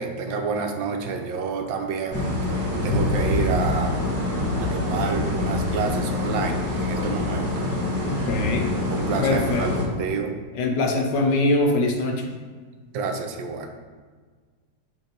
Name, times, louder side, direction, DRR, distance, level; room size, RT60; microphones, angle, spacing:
voice 1, 0.0-4.0 4.6-7.7 8.9-10.3 12.9-13.7, right 5 dB, 85° right, 4 dB, 1.4 m, -29 dB
sound 1, 2.1-9.8, left 2 dB, 10° right, 1.1 m, -25 dB
voice 2, 8.0-8.7 9.2-9.7 10.5-12.3, left 2 dB, 70° left, 3 dB, 1.3 m, -23 dB
7.0 x 3.0 x 5.3 m, 1.5 s
omnidirectional pair, 2.0 m